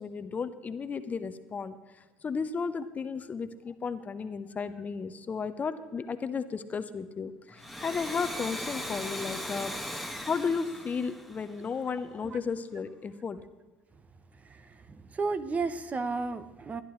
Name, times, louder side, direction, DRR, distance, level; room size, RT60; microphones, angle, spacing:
voice 1, 0.0-1.8 2.2-9.7 10.2-13.4, left 5 dB, 30° left, 11 dB, 0.8 m, -34 dB
Domestic sounds home sounds, 7.5-12.0, equal, ahead, 1.3 m, -38 dB
voice 2, 14.4-16.8, right 4 dB, 30° right, 12 dB, 1.0 m, -33 dB
19.5 x 11.5 x 3.2 m, 1.3 s
hypercardioid pair, 80°, 5 cm